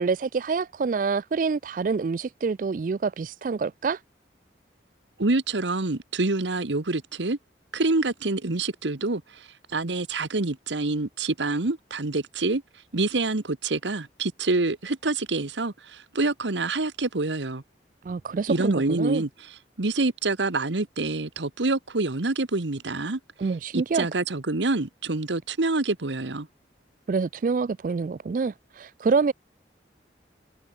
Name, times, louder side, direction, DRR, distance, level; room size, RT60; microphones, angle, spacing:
voice 1, 0.0-4.0 18.0-19.2 23.4-24.1 27.1-29.3, right 4 dB, 45° right, 0.3 m, -26 dB
voice 2, 5.2-7.4 7.7-12.6 12.9-17.6 18.5-23.2 23.7-26.5, right 2 dB, 85° right, 1.3 m, -27 dB
head